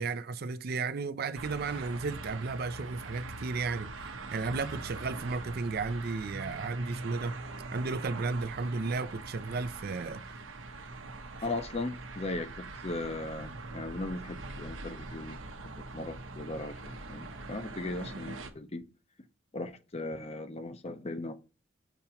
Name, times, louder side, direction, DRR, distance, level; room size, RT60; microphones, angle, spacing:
voice 1, 0.0-7.4 7.7-10.2, right 4 dB, 50° right, 0.4 m, -34 dB
sound 1, 1.3-18.5, right 2 dB, 80° right, 0.9 m, -43 dB
voice 2, 11.4-15.4 15.9-18.8 19.5-21.4, left 2 dB, 30° left, 0.6 m, -38 dB
7.0 x 2.9 x 5.6 m
head